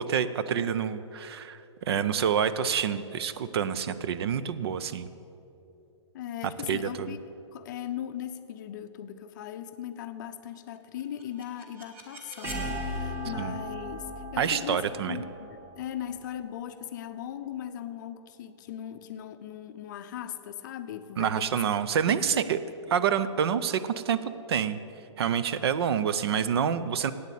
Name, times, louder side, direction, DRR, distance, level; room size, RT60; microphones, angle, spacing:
voice 1, 0.0-1.6 1.9-5.1 6.7-7.1 13.4-13.6 14.4-15.2 21.2-22.6 22.9-24.8 25.2-27.1, right 8 dB, 55° right, 14 dB, 0.5 m, -27 dB
voice 2, 6.1-7.2 7.5-21.5 22.3-22.5, left 10 dB, 40° left, 10 dB, 0.5 m, -39 dB
sound 1, 11.0-16.9, equal, 15° right, 1.2 m, -38 dB
8.5 x 8.2 x 8.2 m, 2.8 s
hypercardioid pair, 155°, 16 cm